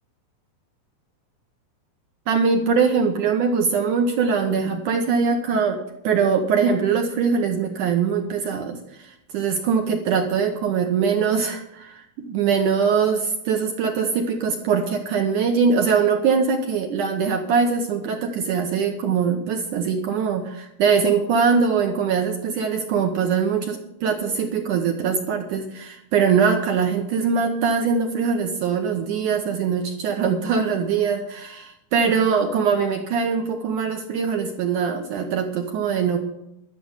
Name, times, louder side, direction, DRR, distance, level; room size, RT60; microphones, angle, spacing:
voice 1, 2.3-36.2, right 6 dB, 70° right, 3 dB, 2.0 m, -22 dB
12.5 x 6.9 x 9.6 m, 0.83 s
omnidirectional pair, 4.7 m